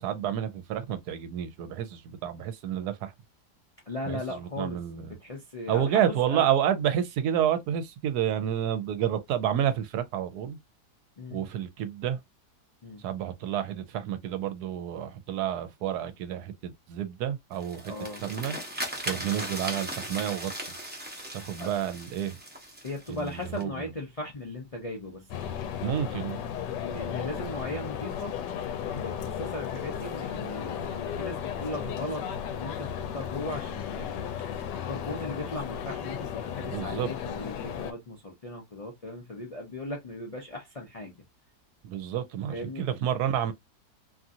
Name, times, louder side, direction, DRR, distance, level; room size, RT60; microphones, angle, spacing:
voice 1, 0.0-3.1 4.1-5.2 5.7-10.6 11.3-12.2 13.0-17.9 18.2-18.6 19.1-20.5 21.3-22.3 23.1-23.9 25.8-26.4 36.6-37.1 41.8-43.5, right 10 dB, 75° right, 1.1 m, -29 dB
voice 2, 3.9-4.8 5.1-6.5 11.2-11.5 12.8-13.0 17.9-18.2 21.6-21.7 22.8-25.3 26.8-28.4 28.9-34.3 34.9-41.2 42.5-42.8, left 2 dB, 65° left, 0.3 m, -37 dB
sound 1, 17.5-23.6, right 1 dB, 10° right, 0.5 m, -38 dB
sound 2, 25.3-37.9, left 8 dB, 90° left, 1.2 m, -35 dB
2.9 x 2.5 x 2.7 m
omnidirectional pair, 1.8 m